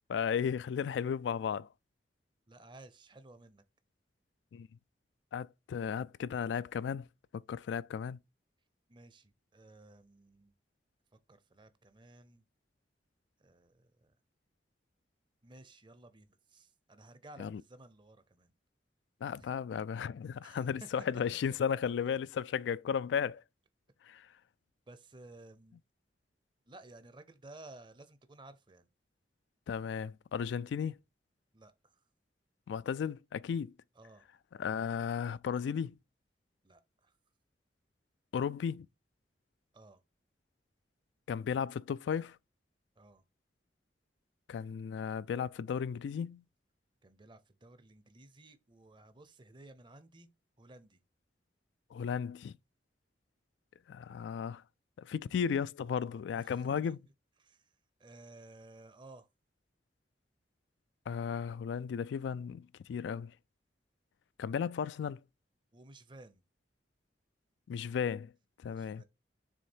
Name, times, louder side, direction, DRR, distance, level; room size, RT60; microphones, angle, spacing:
voice 1, 0.1-1.7 4.5-4.7 5.3-7.1 7.3-8.2 17.4-17.6 19.2-23.4 24.1-24.3 29.7-31.0 32.7-33.7 34.6-36.0 38.3-38.9 41.3-42.4 44.5-46.4 51.9-52.5 53.9-54.6 55.0-57.0 61.1-63.3 64.4-65.2 67.7-68.3 68.6-69.0, left 7 dB, 80° left, 0.3 m, -35 dB
voice 2, 2.5-3.6 8.9-10.5 11.3-12.4 13.4-14.2 15.4-18.5 19.4-19.5 20.4-20.9 24.9-25.8 26.7-28.9 31.5-31.9 34.0-34.3 36.6-37.1 39.7-40.0 43.0-43.2 47.0-50.3 50.6-51.0 56.4-57.0 57.4-57.7 58.0-59.3 65.7-66.4 68.6-69.0, right 2 dB, 25° right, 0.7 m, -55 dB
6.3 x 3.6 x 4.4 m
head